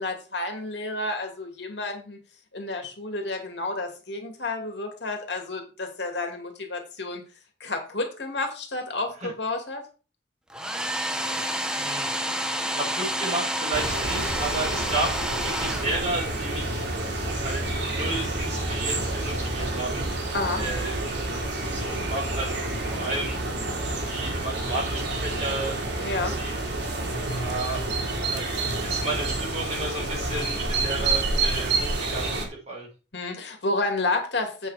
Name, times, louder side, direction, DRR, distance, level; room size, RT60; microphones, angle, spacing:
voice 1, 0.0-2.2 2.5-7.2 7.6-9.8 20.3-20.6 26.0-26.4 33.1-34.7, left 2 dB, 70° left, 4 dB, 2.5 m, -30 dB
Domestic sounds home sounds, 10.5-16.4, equal, 5° right, 0.8 m, -29 dB
voice 2, 11.1-11.4 11.7-12.1 12.7-16.9 17.3-20.3 20.5-21.0 21.6-23.4 24.1-26.5 27.4-27.8 28.3-28.5 28.8-32.9, right 2 dB, 35° right, -4 dB, 6.2 m, -33 dB
sound 1, 13.7-32.5, right 2 dB, 70° right, 3.1 m, -29 dB
8.3 x 6.7 x 5.0 m, 0.34 s
head